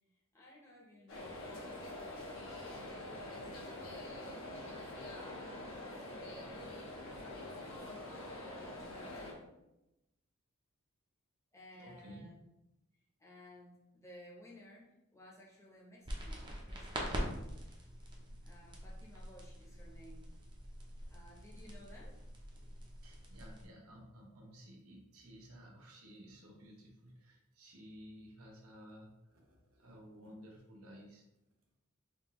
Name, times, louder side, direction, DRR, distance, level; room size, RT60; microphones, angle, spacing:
voice 1, 0.3-4.5 5.0-6.8 7.4-9.6 11.5-12.5 13.2-17.6 18.4-20.3 21.1-22.2, left 1 dB, 15° left, -3 dB, 0.8 m, -58 dB
sound 1, 1.1-9.3, left 1 dB, 65° left, 0.9 m, -45 dB
voice 2, 11.7-12.3 23.0-31.2, equal, 80° right, 0 dB, 0.9 m, -55 dB
sound 2, 16.0-23.6, equal, 20° right, 0.6 m, -44 dB
3.6 x 2.8 x 3.0 m, 0.90 s
head